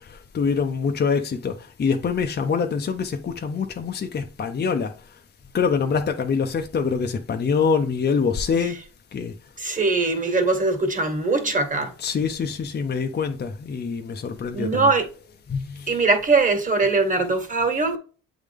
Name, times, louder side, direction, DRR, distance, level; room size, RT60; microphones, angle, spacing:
voice 1, 0.1-4.9 5.5-8.8 9.1-9.3 11.8-14.9 15.5-16.0, left 5 dB, 35° left, 0.7 m, -25 dB
voice 2, 9.6-11.9 14.5-15.1 15.9-18.0, right 3 dB, 25° right, 1.6 m, -21 dB
7.9 x 3.7 x 3.5 m
cardioid pair, 90°, 30 cm